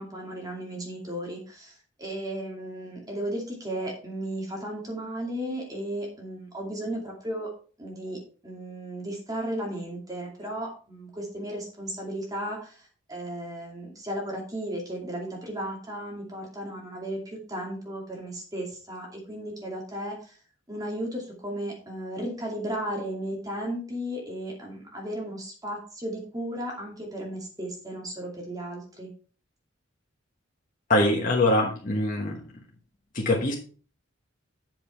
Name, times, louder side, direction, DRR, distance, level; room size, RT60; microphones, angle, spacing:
voice 1, 0.0-7.5 7.8-12.8 13.1-20.4 20.7-29.1, right 1 dB, 20° right, -1 dB, 2.5 m, -35 dB
voice 2, 30.9-32.4 33.1-33.5, left 1 dB, 45° left, -1 dB, 1.3 m, -23 dB
7.7 x 6.7 x 4.5 m, 0.40 s
head